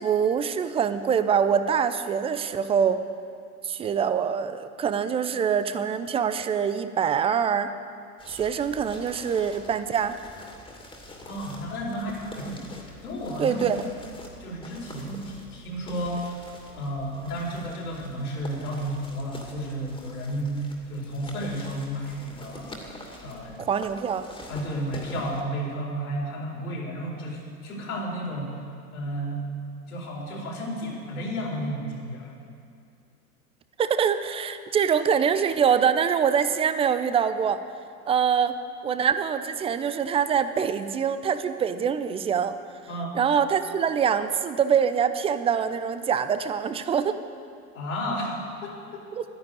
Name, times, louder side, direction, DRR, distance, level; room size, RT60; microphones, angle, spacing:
voice 1, 0.0-3.0 3.6-7.7 8.3-10.2 13.4-13.8 23.6-24.2 33.8-37.6 38.1-38.5 38.8-42.5 43.1-47.2 49.1-49.2, right 7 dB, 15° right, 11 dB, 0.5 m, -24 dB
sound 1, 8.2-25.4, left 1 dB, 10° left, 2.5 m, -45 dB
voice 2, 11.2-13.7 14.4-16.5 16.7-22.9 23.2-23.6 24.5-28.6 28.9-29.5 29.9-32.3 42.9-43.2 47.7-49.1, equal, 70° left, -2 dB, 4.7 m, -32 dB
13.0 x 10.5 x 9.0 m, 2.4 s
hypercardioid pair, 95°, 44 cm